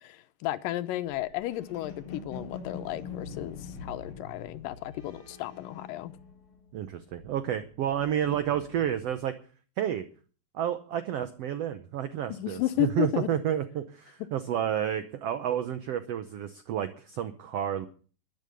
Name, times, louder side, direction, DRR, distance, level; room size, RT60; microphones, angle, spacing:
voice 1, 0.0-6.2 12.3-13.3, left 14 dB, 80° left, 2.4 m, -33 dB
sound 1, 1.1-6.7 7.0-9.2, left 5 dB, 50° left, 5.0 m, -44 dB
voice 2, 6.7-9.3 9.8-10.1 10.5-17.9, right 10 dB, 90° right, 1.3 m, -30 dB
12.0 x 10.5 x 6.8 m
omnidirectional pair, 4.0 m